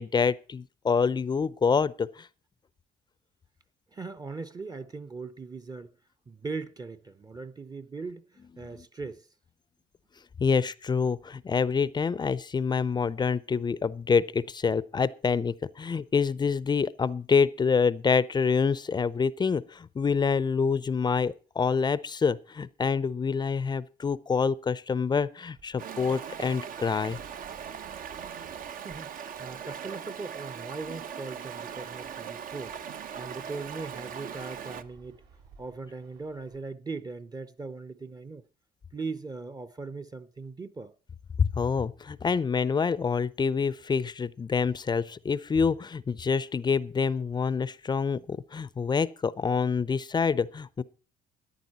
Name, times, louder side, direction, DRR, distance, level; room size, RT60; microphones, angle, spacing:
voice 1, 0.0-2.3 10.4-27.2 41.4-50.8, left 5 dB, 25° left, 0.6 m, -26 dB
voice 2, 3.9-5.9 6.3-9.3 28.8-32.8 33.2-35.2 35.6-38.4 38.9-40.9, right 4 dB, 20° right, 0.8 m, -39 dB
Fixed-wing aircraft airplane, 25.5-36.6, right 5 dB, 80° right, 4.9 m, -58 dB
Stream, 25.8-34.8, right 8 dB, 55° right, 0.9 m, -40 dB
13.5 x 10.5 x 4.1 m
cardioid pair, 110°, 17 cm